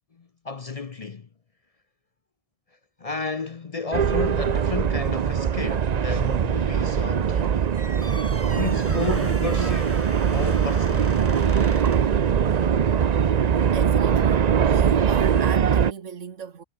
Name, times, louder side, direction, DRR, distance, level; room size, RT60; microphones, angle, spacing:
voice 1, 0.2-1.3 3.0-7.7 8.5-11.2, left 4 dB, 35° left, 0.6 m, -32 dB
sound 1, 3.9-15.9, right 7 dB, 45° right, 0.6 m, -21 dB
sound 2, 7.7-12.2, right 1 dB, 10° right, 3.3 m, -39 dB
voice 2, 13.7-14.4 14.7-16.6, right 6 dB, 90° right, 1.7 m, -37 dB
omnidirectional pair, 1.2 m